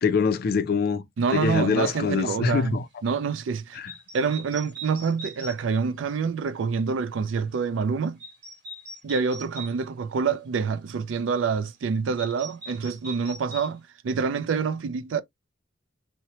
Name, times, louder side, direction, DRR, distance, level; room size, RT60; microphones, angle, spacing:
voice 1, 0.0-1.0 1.3-2.8 3.8-3.9, left 5 dB, 50° left, 0.4 m, -24 dB
voice 2, 1.2-3.8 4.1-8.2 9.0-15.2, right 5 dB, 80° right, 0.4 m, -27 dB
sound 1, 3.9-5.6 8.2-9.7 12.2-13.7, right 2 dB, 55° right, 1.5 m, -40 dB
2.9 x 2.1 x 2.7 m
head